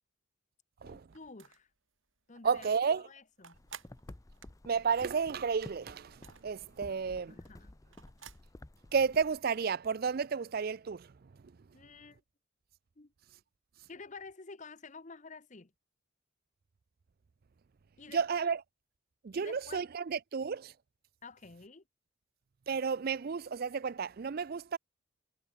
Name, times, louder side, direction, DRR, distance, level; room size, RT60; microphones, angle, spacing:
voice 1, 0.8-1.7 2.3-2.7 2.9-3.6 6.9-7.0 7.3-7.7 11.7-12.2 13.0-13.1 13.9-15.7 18.0-18.4 19.3-19.8 21.2-21.8, left 4 dB, 35° left, 0.9 m, -50 dB
sound 1, 1.1-1.8 2.2-2.3 2.5-5.5 5.8-8.5, right 8 dB, 65° right, 3.5 m, -53 dB
voice 2, 2.4-3.1 4.7-7.4 8.9-11.1 18.1-18.6 19.2-20.7 22.7-24.8, right 6 dB, 45° right, 0.4 m, -32 dB
sound 2, 3.5-9.4, left 1 dB, 15° left, 0.5 m, -53 dB
head